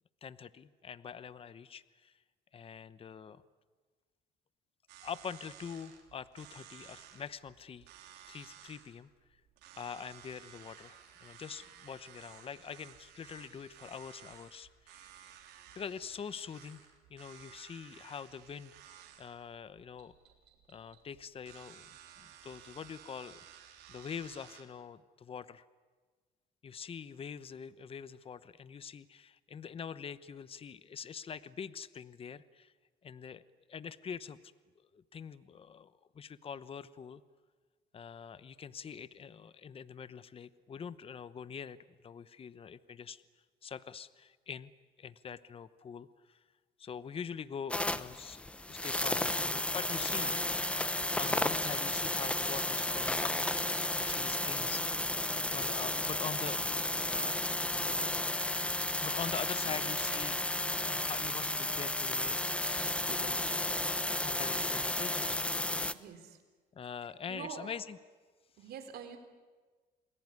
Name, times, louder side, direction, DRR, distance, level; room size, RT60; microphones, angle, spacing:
voice 1, 0.2-2.1 2.5-3.4 5.0-9.1 9.8-15.2 15.8-16.8 17.1-20.1 20.7-21.9 22.2-23.4 23.9-25.7 26.6-32.7 33.0-33.4 33.7-34.4 34.9-37.2 37.9-43.2 43.6-44.7 45.0-46.4 46.8-53.3 54.0-55.0 55.5-56.6 59.0-60.4 60.9-63.5 64.0-65.4 66.7-68.0, left 7 dB, 35° left, 15 dB, 0.9 m, -44 dB
sound 1, 4.9-24.6, right 10 dB, 85° right, 3.8 m, -56 dB
sound 2, 47.7-65.9, left 1 dB, 5° left, 0.8 m, -33 dB
voice 2, 65.9-66.4 67.3-67.7 68.6-69.2, right 7 dB, 70° right, 7 dB, 3.8 m, -45 dB
28.5 x 20.5 x 9.7 m, 1.4 s
cardioid pair, 110°, 17 cm